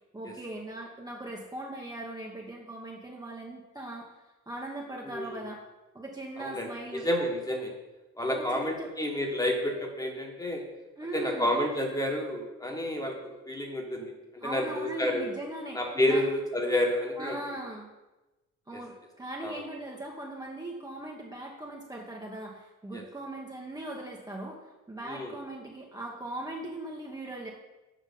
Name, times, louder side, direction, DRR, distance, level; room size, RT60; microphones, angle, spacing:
voice 1, 0.1-5.6 5.9-7.1 8.3-8.9 11.0-11.5 14.4-15.8 16.1-16.2 17.2-17.9 18.7-18.9 19.2-27.5, right 1 dB, 15° right, -2 dB, 1.0 m, -39 dB
voice 2, 6.4-7.7 8.1-10.6 11.1-15.3 15.7-17.4 18.7-18.8 19.4-19.6 22.9-23.0 25.0-25.3, left 1 dB, 10° left, 1 dB, 1.4 m, -30 dB
7.5 x 5.0 x 5.4 m, 1.1 s
cardioid pair, 115°, 29 cm